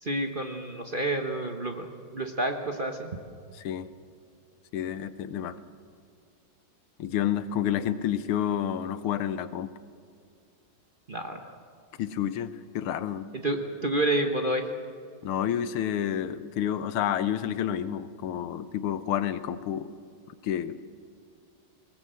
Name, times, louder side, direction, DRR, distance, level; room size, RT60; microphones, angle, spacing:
voice 1, 0.0-3.1 11.1-11.5 13.3-14.6, right 1 dB, 35° right, 4 dB, 1.0 m, -29 dB
voice 2, 4.7-5.6 7.0-9.7 12.0-13.3 15.2-19.9 20.4-20.8, left 10 dB, 85° left, 13 dB, 1.8 m, -29 dB
20.0 x 19.0 x 7.7 m, 2.3 s
omnidirectional pair, 2.3 m